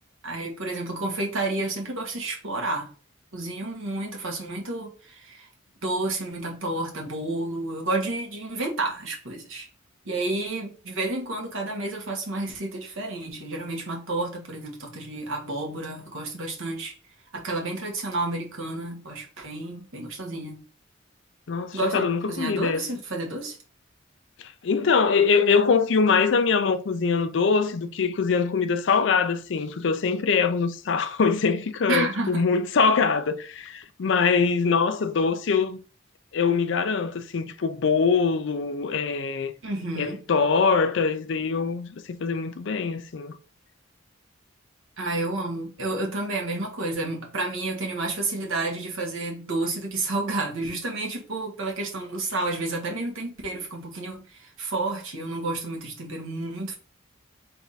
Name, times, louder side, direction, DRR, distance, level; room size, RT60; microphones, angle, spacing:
voice 1, 0.2-2.9 3.3-5.5 5.8-9.7 10.0-17.0 17.3-20.6 21.7-23.6 31.9-32.5 39.6-40.2 45.0-56.8, right 2 dB, 80° right, 1.3 m, -30 dB
voice 2, 21.5-22.8 24.4-35.8 36.3-39.5 40.0-43.4, left 5 dB, 65° left, 0.4 m, -23 dB
3.5 x 3.4 x 4.0 m
head